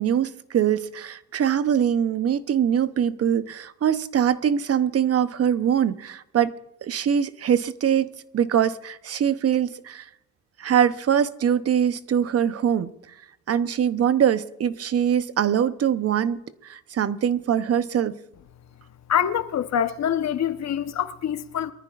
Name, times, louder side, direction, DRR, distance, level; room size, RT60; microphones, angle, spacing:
voice 1, 0.0-6.5 6.8-10.1 10.6-12.9 13.5-18.1, right 9 dB, 50° right, 0.9 m, -23 dB
voice 2, 19.1-21.7, left 9 dB, 60° left, 1.1 m, -25 dB
23.5 x 14.0 x 2.5 m
cardioid pair, 90°, 30 cm